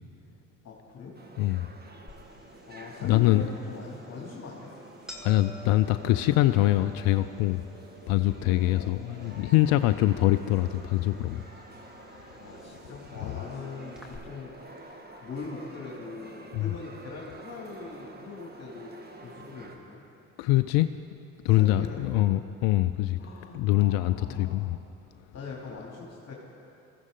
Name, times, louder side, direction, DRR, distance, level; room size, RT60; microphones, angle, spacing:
voice 1, 0.6-1.1 2.7-4.7 8.4-9.0 12.3-18.9 19.2-20.0 21.5-22.4 23.2-24.7 25.3-26.3, left 4 dB, 40° left, -3 dB, 2.7 m, -42 dB
sound 1, 1.1-19.8, right 2 dB, 25° right, 1.9 m, -49 dB
voice 2, 1.4-1.7 3.0-3.5 5.2-7.6 8.1-11.4 13.3-13.4 16.5-16.7 20.4-20.9 21.4-23.2 23.5-24.8, left 15 dB, 65° left, 11 dB, 0.5 m, -24 dB
sound 2, 2.1-14.2, left 1 dB, ahead, 2.5 m, -53 dB
20.5 x 14.5 x 3.8 m, 2.6 s
hypercardioid pair, 60°, 39 cm